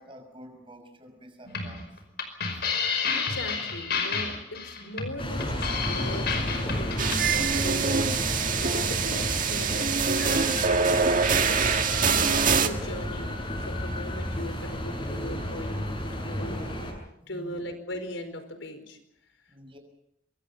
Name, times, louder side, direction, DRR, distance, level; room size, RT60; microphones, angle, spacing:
voice 1, 0.0-1.9 17.2-17.6 19.5-19.8, equal, 30° right, 5 dB, 6.1 m, -49 dB
sound 1, 1.5-7.4, left 5 dB, 60° left, 5.3 m, -30 dB
voice 2, 2.8-7.2 7.5-8.0 8.9-10.6 11.5-15.8 16.2-16.6 17.3-19.0, left 1 dB, 85° left, 8 dB, 4.8 m, -39 dB
sound 2, 5.2-16.9, equal, 30° left, 8.0 m, -32 dB
sound 3, 7.0-12.7, right 6 dB, 45° right, 1.8 m, -24 dB
27.0 x 23.0 x 5.6 m, 0.77 s
head